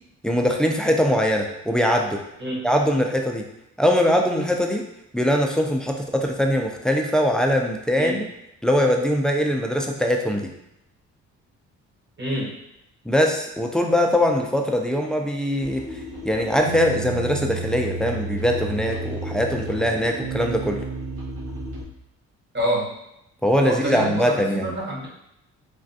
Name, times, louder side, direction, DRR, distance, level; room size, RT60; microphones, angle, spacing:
voice 1, 0.2-2.2 2.6-3.5 3.8-4.8 5.1-8.2 8.6-10.5 13.1-15.8 16.2-20.8 23.4-24.7, equal, 5° left, 1 dB, 0.3 m, -22 dB
voice 2, 7.9-8.3 12.2-12.5 22.5-22.9 23.7-25.1, right 1 dB, 35° right, -3 dB, 1.0 m, -27 dB
sound 1, 15.6-21.8, right 2 dB, 80° right, 1.2 m, -32 dB
3.3 x 2.2 x 2.6 m, 0.85 s
cardioid pair, 90°, 30 cm